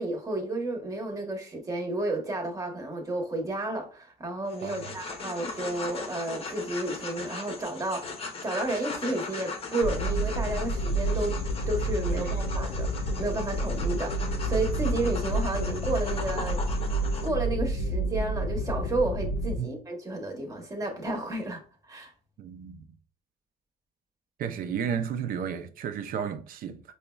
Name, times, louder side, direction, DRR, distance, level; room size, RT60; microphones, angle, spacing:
voice 1, 0.0-11.4 11.7-16.6 17.2-22.1, right 2 dB, 20° right, 0.9 m, -32 dB
sound 1, 4.5-17.3, left 4 dB, 35° left, 0.6 m, -38 dB
voice 2, 4.6-4.9 12.2-12.3 19.6-19.7 22.4-22.8 24.4-26.8, right 7 dB, 60° right, 0.5 m, -33 dB
sound 2, 9.8-19.6, right 1 dB, 70° left, 0.4 m, -29 dB
5.0 x 2.1 x 2.2 m
cardioid pair, 110°, 17 cm